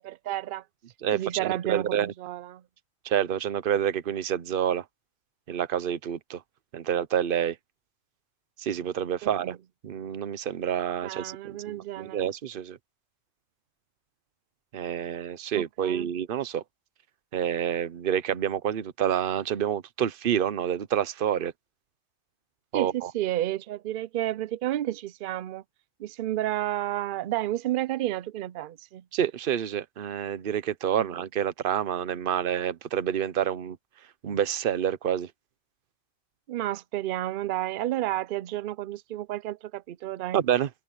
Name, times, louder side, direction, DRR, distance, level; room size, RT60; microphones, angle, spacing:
voice 1, 0.0-0.6 1.1-2.6 9.2-9.6 11.0-12.3 15.5-16.1 22.7-25.6 26.0-29.0 31.0-31.1 36.5-40.4, right 14 dB, 65° right, 0.5 m, -31 dB
voice 2, 1.0-2.1 3.0-4.8 5.5-6.4 6.7-7.6 8.6-9.5 9.8-12.8 14.7-16.6 17.3-21.5 22.7-23.1 29.1-33.8 34.2-35.3 40.3-40.7, right 9 dB, 50° right, 0.9 m, -28 dB
omnidirectional pair, 1.4 m